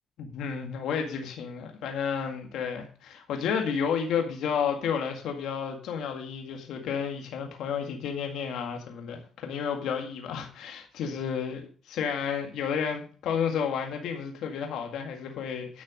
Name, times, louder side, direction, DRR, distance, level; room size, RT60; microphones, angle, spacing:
voice 1, 0.2-15.8, left 7 dB, 80° left, 3 dB, 1.9 m, -31 dB
10.5 x 6.5 x 6.2 m, 0.42 s
cardioid pair, 90°, 0 cm